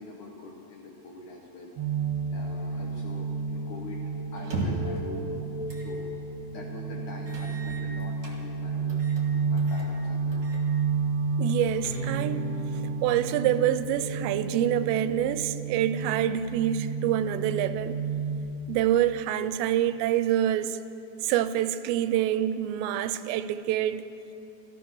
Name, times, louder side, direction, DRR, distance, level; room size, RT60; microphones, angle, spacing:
voice 1, 0.0-1.9 2.3-5.3 5.7-6.1 6.5-9.1 9.3-10.5, left 3 dB, 70° left, -1 dB, 1.9 m, -44 dB
sound 1, 1.8-18.4, right 4 dB, 70° right, 1.6 m, -31 dB
sound 2, 4.4-5.0 5.7-5.9 6.3-6.4 7.3-8.4 8.9-9.2 9.6-9.9 10.3-10.6 10.9-11.0 11.5-12.3, right 2 dB, 35° right, 2.0 m, -37 dB
voice 2, 11.4-12.4 12.8-18.0 18.7-20.8 21.2-24.0, right 11 dB, 90° right, 12 dB, 2.8 m, -26 dB
Bass guitar, 11.8-18.1, left 3 dB, 35° left, 1.5 m, -45 dB
14.5 x 14.0 x 6.2 m, 2.8 s
omnidirectional pair, 5.0 m